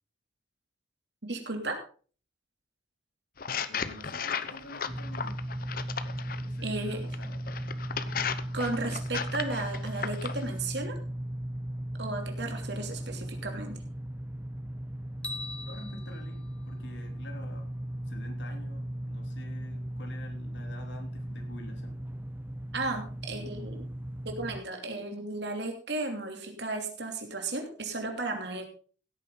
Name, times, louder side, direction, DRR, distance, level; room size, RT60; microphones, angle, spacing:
voice 1, 1.2-1.8 6.6-7.0 8.5-11.0 12.0-13.8 22.7-23.9 24.2-28.6, right 2 dB, 60° right, 4 dB, 3.0 m, -34 dB
sound 1, 3.4-6.4 7.1-10.4, left 7 dB, 50° left, 0.8 m, -35 dB
voice 2, 3.7-5.4 6.4-7.3 12.4-12.5 15.6-17.7 18.1-22.0, left 1 dB, 70° left, 4 dB, 3.1 m, -48 dB
sound 2, 4.9-24.6, right 1 dB, 10° right, 0.5 m, -37 dB
sound 3, 15.2-17.5, left 2 dB, 5° left, 1.1 m, -43 dB
16.0 x 9.4 x 3.9 m, 0.39 s
head